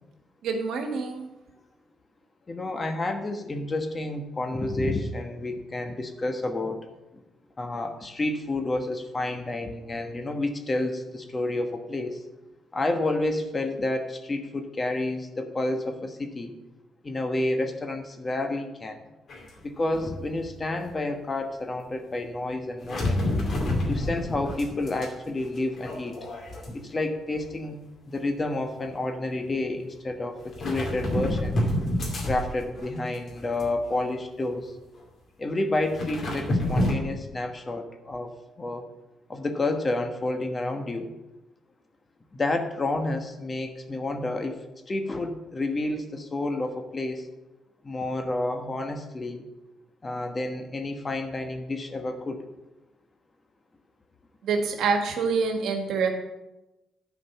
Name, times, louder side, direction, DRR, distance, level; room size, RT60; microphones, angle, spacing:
voice 1, 0.4-1.3 54.4-56.1, right 5 dB, 75° right, 4 dB, 1.6 m, -26 dB
voice 2, 2.5-6.8 7.1-7.2 7.6-12.2 12.7-16.5 17.0-19.0 19.6-23.2 23.9-26.2 26.7-27.8 28.1-31.6 32.2-34.7 35.4-38.8 39.3-41.1 42.3-44.6 44.9-47.3 47.8-49.4 50.0-52.4, left 2 dB, 30° left, 6 dB, 1.2 m, -30 dB
sound 1, 19.3-19.6 19.9-20.8 22.8-25.1 25.4-27.1 27.4-27.7 28.8-28.9 30.5-32.9 33.3-34.0 34.4-34.5 35.8-36.9, left 1 dB, 50° left, 2.5 m, -29 dB
10.0 x 5.1 x 7.1 m, 1.0 s
cardioid pair, 90°, 0 cm